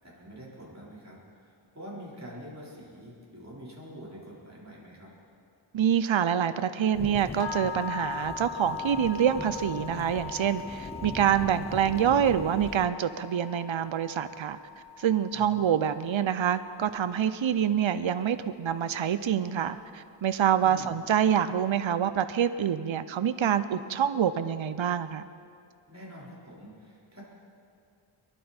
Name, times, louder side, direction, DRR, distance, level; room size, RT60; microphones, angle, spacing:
voice 1, 0.0-5.1 15.3-15.7 20.6-21.0 25.9-27.2, equal, 30° right, -6 dB, 4.3 m, -46 dB
voice 2, 5.7-14.6 15.0-25.3, right 9 dB, 65° right, 12 dB, 0.6 m, -26 dB
Thunderstorm / Rain, 6.9-12.9, left 2 dB, 10° left, 0.6 m, -41 dB
sound 1, 7.4-17.5, left 7 dB, 65° left, 0.7 m, -41 dB
23.5 x 11.5 x 4.4 m, 2.4 s
wide cardioid pair, 40°, 50 cm